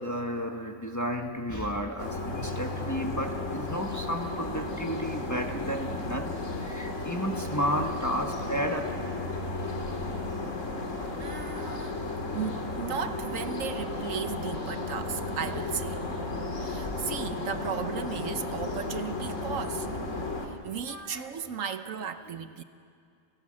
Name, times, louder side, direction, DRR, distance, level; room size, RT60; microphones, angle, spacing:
voice 1, 0.0-6.3 6.6-8.9 9.3-9.6 11.4-12.0 16.0-16.1 20.9-21.4, equal, 15° left, 3 dB, 1.3 m, -33 dB
sound 1, 2.0-20.5, left 2 dB, 60° left, 2.6 m, -34 dB
voice 2, 11.0-12.0 12.3-16.0 16.6-19.9 20.4-22.6, right 7 dB, 70° right, 10 dB, 1.2 m, -36 dB
30.0 x 16.0 x 7.6 m, 2.3 s
omnidirectional pair, 1.5 m